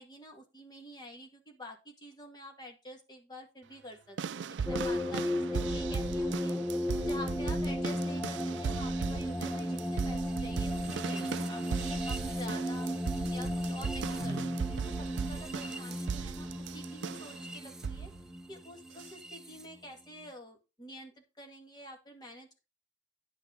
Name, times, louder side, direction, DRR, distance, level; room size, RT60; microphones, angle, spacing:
voice 1, 0.0-6.6 7.1-12.9 13.3-14.4 14.7-18.1 18.5-22.6, equal, 20° left, 2 dB, 2.1 m, -48 dB
sound 1, 4.2-17.4 17.8-18.2 19.0-19.1, right 6 dB, 80° right, 0.4 m, -38 dB
sound 2, 4.7-19.7, equal, 5° right, 0.6 m, -35 dB
10.5 x 5.4 x 5.0 m, 0.28 s
head